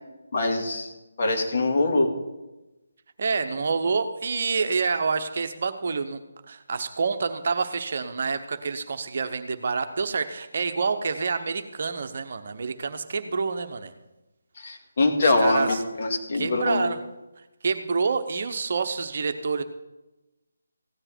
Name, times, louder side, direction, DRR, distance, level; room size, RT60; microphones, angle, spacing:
voice 1, 0.3-0.9 1.2-2.1 14.6-16.9, left 2 dB, 50° left, 3 dB, 2.1 m, -23 dB
voice 2, 3.2-6.2 6.5-13.9 15.2-15.8 16.3-17.0 17.6-19.6, right 4 dB, 50° right, 8 dB, 0.9 m, -27 dB
16.0 x 9.9 x 4.5 m, 1.0 s
figure-of-eight pair, 150°, 0 cm